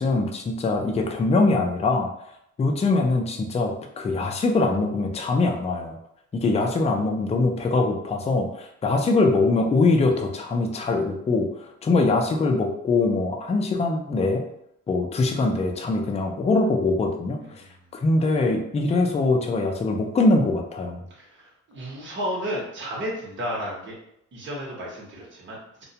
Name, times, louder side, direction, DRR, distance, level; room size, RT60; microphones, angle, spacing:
voice 1, 0.0-2.1 2.6-5.9 6.3-14.4 14.9-17.6 17.9-21.0, left 3 dB, 20° left, 3 dB, 0.4 m, -23 dB
voice 2, 21.1-23.9 24.3-25.8, equal, 40° right, -4 dB, 0.9 m, -33 dB
2.3 x 2.1 x 2.7 m, 0.77 s
cardioid pair, 90°, 30 cm